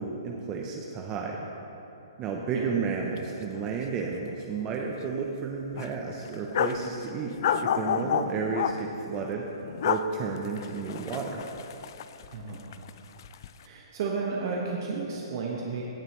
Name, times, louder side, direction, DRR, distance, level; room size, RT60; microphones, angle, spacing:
voice 1, 0.0-1.4 2.2-7.4 7.6-9.5 9.8-11.4, right 5 dB, 25° right, 0 dB, 0.7 m, -32 dB
sound 1, 3.1-3.3 3.5-3.7 4.1-4.8 5.1-5.2 5.7-6.9 7.4-8.7 9.6-10.0 10.4-12.4 12.7-13.5, left 8 dB, 55° left, 0.4 m, -30 dB
voice 2, 12.3-12.6 13.6-15.8, right 4 dB, 50° right, -2 dB, 1.2 m, -32 dB
16.0 x 7.5 x 3.1 m, 3.0 s
hypercardioid pair, 150°, 3 cm